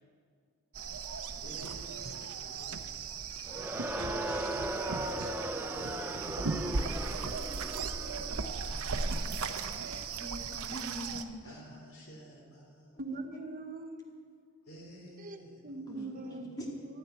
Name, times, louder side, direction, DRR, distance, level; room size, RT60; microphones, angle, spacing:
sound 1, 0.7-11.2, right 4 dB, 80° right, 0.8 m, -37 dB
voice 1, 1.4-2.9 5.7-7.2 8.5-9.9 11.4-13.0 14.6-17.0, equal, 75° left, -1 dB, 3.6 m, -52 dB
Crowd, 3.5-8.5, right 1 dB, 10° right, 0.6 m, -37 dB
voice 2, 10.1-11.4 13.1-13.2 15.9-16.5, equal, 20° left, -2 dB, 2.0 m, -43 dB
voice 3, 13.0-14.2 15.2-16.4 16.8-17.0, right 2 dB, 40° right, 6 dB, 0.8 m, -42 dB
13.0 x 7.6 x 9.5 m, 2.1 s
head